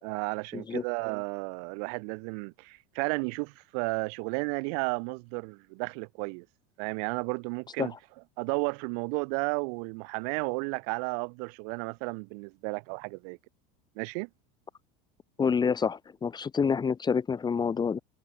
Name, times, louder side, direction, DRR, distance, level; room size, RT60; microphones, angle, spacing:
voice 1, 0.0-6.5 6.8-7.9 8.4-13.4 14.0-14.3, right 40 dB or more, 65° right, 3.9 m, -33 dB
voice 2, 0.5-0.8 7.8-7.9 15.4-18.0, left 6 dB, 20° left, 2.2 m, -27 dB
supercardioid pair, 125°, 21 cm